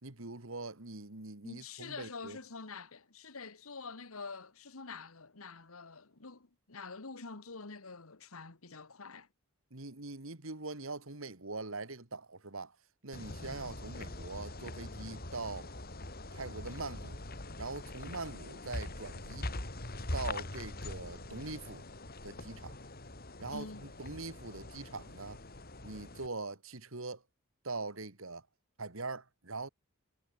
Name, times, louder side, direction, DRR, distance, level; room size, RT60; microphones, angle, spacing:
voice 1, 0.0-2.4 9.7-12.8 13.0-15.7 16.3-17.2 17.6-19.5 20.1-21.9 22.2-22.8 23.4-25.4 25.8-27.2 27.6-28.5 28.8-29.7, right 3 dB, 70° right, 2.3 m, -42 dB
voice 2, 1.4-9.3 23.5-23.8, left 4 dB, 85° left, 1.8 m, -46 dB
sound 1, 13.1-26.3, left 2 dB, 45° left, 3.7 m, -43 dB
head